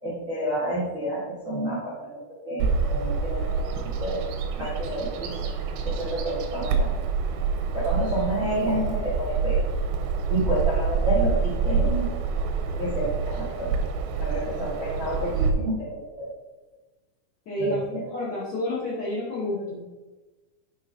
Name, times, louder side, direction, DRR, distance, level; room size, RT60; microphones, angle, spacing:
voice 1, 0.0-2.1 2.4-3.7 4.0-4.2 4.6-5.3 5.8-7.0 7.7-9.6 10.3-12.1 12.4-13.8 14.2-16.3 17.6-18.0, right 1 dB, 65° right, -8 dB, 0.7 m, -29 dB
Bird vocalization bird call bird song, 2.6-15.5, right 5 dB, 85° right, 3.3 m, -27 dB
voice 2, 17.5-17.8 18.1-19.8, left 1 dB, 50° left, -9 dB, 2.2 m, -29 dB
9.7 x 5.5 x 3.7 m, 1.2 s
omnidirectional pair, 5.9 m